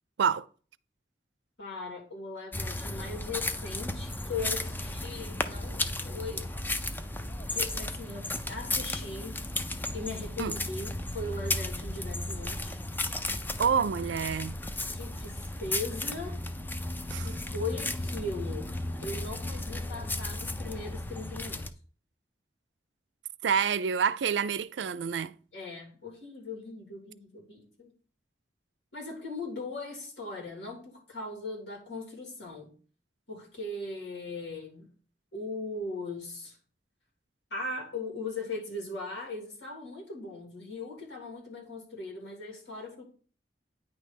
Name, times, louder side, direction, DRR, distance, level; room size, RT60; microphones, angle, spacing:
voice 1, 1.6-6.5 7.5-9.4 9.9-12.8 14.9-16.4 17.2-21.6 25.5-27.9 28.9-32.7 33.3-34.9 35.3-36.6 37.5-43.0, left 3 dB, 85° left, 3.0 m, -39 dB
sound 1, 2.5-21.7, left 2 dB, 10° left, 0.4 m, -34 dB
voice 2, 13.6-14.6 17.1-17.3 23.4-25.4, right 7 dB, 90° right, 0.4 m, -28 dB
9.5 x 3.3 x 5.0 m
head